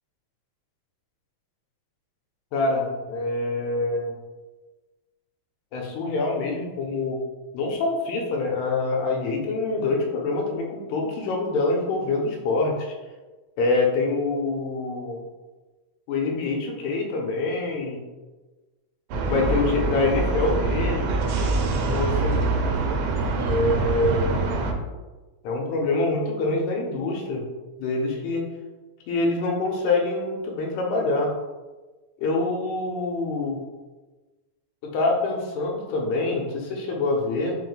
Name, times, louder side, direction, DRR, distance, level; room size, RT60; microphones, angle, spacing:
voice 1, 2.5-4.1 5.7-7.2 7.5-12.9 13.6-15.2 16.1-18.0 19.3-21.2 21.8-22.5 23.5-24.3 25.4-27.4 27.8-28.4 29.1-31.3 32.2-33.6 34.9-37.5, left 3 dB, 75° left, 0 dB, 2.0 m, -25 dB
sound 1, 19.1-24.7, right 3 dB, 85° right, 2.1 m, -24 dB
5.0 x 2.1 x 3.9 m, 1.2 s
omnidirectional pair, 3.4 m